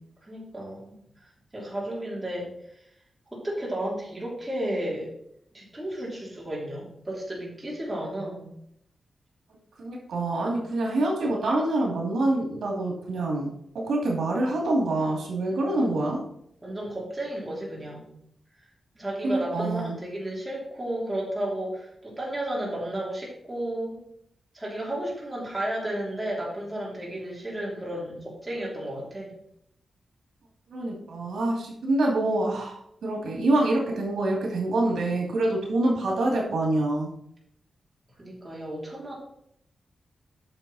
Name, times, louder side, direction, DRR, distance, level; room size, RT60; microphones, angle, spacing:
voice 1, 0.2-1.0 1.5-2.5 3.3-5.1 5.5-8.5 15.8-16.0 16.6-18.1 18.9-24.0 24.5-29.3 38.2-39.1, right 1 dB, 10° right, -5 dB, 3.1 m, -33 dB
voice 2, 9.8-13.5 13.7-16.2 19.2-20.0 30.7-37.1, right 2 dB, 85° right, -1 dB, 2.5 m, -26 dB
8.8 x 6.3 x 4.2 m, 0.72 s
wide cardioid pair, 160°, 0 cm